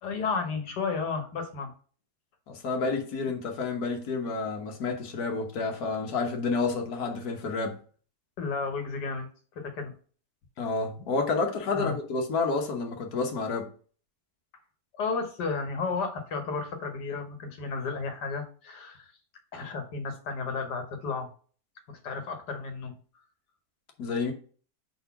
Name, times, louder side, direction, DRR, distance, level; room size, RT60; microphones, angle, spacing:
voice 1, 0.0-1.7 8.4-9.9 11.7-12.0 14.9-19.1 19.5-21.3 21.9-23.2, left 4 dB, 80° left, 1.8 m, -33 dB
voice 2, 2.5-7.8 10.6-13.7 24.0-24.3, left 4 dB, 65° left, 1.6 m, -29 dB
4.9 x 4.1 x 5.7 m
omnidirectional pair, 1.7 m